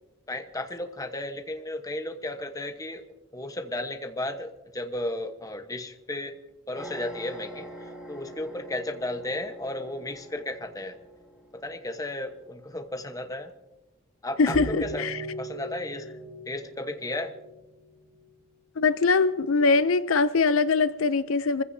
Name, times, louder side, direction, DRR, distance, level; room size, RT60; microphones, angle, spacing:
voice 1, 0.3-3.0 3.3-6.4 6.7-11.0 11.6-13.5 14.2-15.0 15.4-16.1 16.5-17.3, left 1 dB, 15° left, 1.1 m, -34 dB
sound 1, 6.7-11.0 14.5-18.4, right 1 dB, 5° right, 2.6 m, -40 dB
voice 2, 14.4-15.2 18.8-21.6, left 4 dB, 85° left, 0.6 m, -22 dB
26.0 x 15.5 x 2.8 m
head